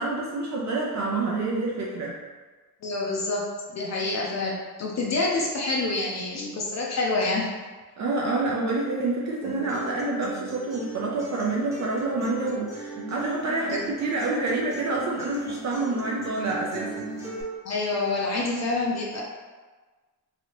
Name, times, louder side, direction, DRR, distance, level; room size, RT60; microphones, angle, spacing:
voice 1, 0.0-2.1 8.0-16.9, right 2 dB, 50° right, -3 dB, 0.5 m, -27 dB
voice 2, 2.8-7.5 13.7-13.8 17.6-19.2, left 2 dB, 50° left, -2 dB, 0.5 m, -27 dB
Acoustic guitar, 9.4-17.4, right 2 dB, 10° right, 0.7 m, -38 dB
3.1 x 2.7 x 2.9 m, 1.3 s
wide cardioid pair, 165°, 35 cm